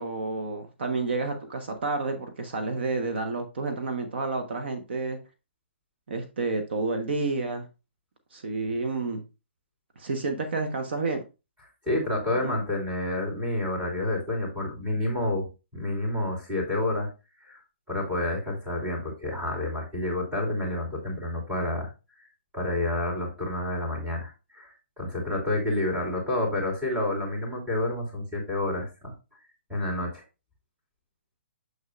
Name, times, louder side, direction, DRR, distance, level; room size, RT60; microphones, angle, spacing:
voice 1, 0.0-5.2 6.1-7.7 8.3-9.2 10.0-11.2 12.3-12.6, right 3 dB, 60° right, 7 dB, 1.2 m, -30 dB
voice 2, 11.8-17.1 17.4-17.6 17.9-21.9 22.5-29.1 29.7-30.2, left 1 dB, 10° right, -2 dB, 3.1 m, -29 dB
7.2 x 6.4 x 2.5 m, 0.29 s
hypercardioid pair, 150°, 7 cm